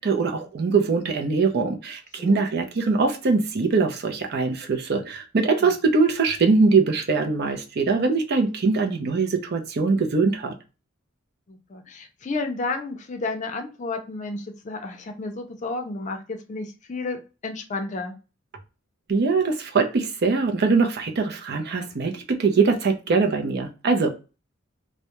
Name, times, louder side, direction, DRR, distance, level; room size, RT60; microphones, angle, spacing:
voice 1, 0.0-10.5 19.1-24.2, right 4 dB, 55° right, 4 dB, 0.5 m, -22 dB
voice 2, 11.5-18.1, left 3 dB, 40° left, 5 dB, 0.5 m, -32 dB
2.3 x 2.1 x 2.9 m, 0.31 s
head